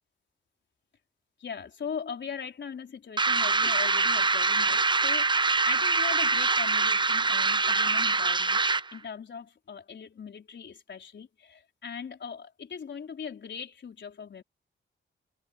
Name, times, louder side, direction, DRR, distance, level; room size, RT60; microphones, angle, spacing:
voice 1, 1.4-8.6 8.9-14.4, left 6 dB, 65° left, 4.5 m, -40 dB
sound 1, 3.2-9.0, right 3 dB, 25° right, 0.7 m, -24 dB
cardioid pair, 80°, 20 cm